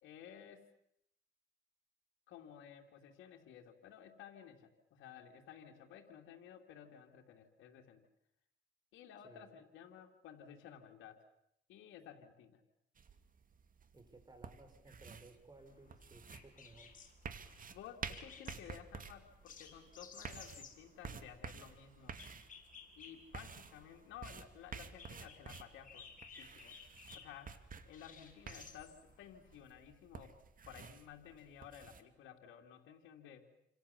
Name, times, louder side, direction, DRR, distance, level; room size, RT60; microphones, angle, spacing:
voice 1, 0.0-0.6 2.3-8.0 8.9-11.2 11.7-12.6 17.7-22.2 23.0-30.4 30.7-33.5, left 9 dB, 90° left, 1 dB, 2.9 m, -55 dB
voice 2, 9.2-9.6 13.9-16.9, right 2 dB, 20° right, 7 dB, 6.1 m, -59 dB
sound 1, 13.0-32.0, right 5 dB, 45° right, 2.5 m, -51 dB
sound 2, 15.6-29.6, left 6 dB, 45° left, 6.9 m, -58 dB
29.0 x 27.0 x 7.2 m, 0.75 s
cardioid pair, 90°, 20 cm